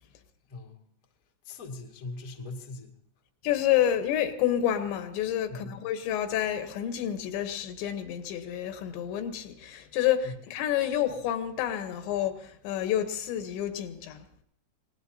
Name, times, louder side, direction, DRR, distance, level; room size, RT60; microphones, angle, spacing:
voice 1, 0.5-0.8 1.4-3.0 5.5-5.7 10.2-10.3, left 3 dB, 50° left, 1.0 m, -40 dB
voice 2, 3.4-14.3, left 11 dB, 85° left, 3.4 m, -29 dB
27.0 x 18.5 x 2.8 m
omnidirectional pair, 5.0 m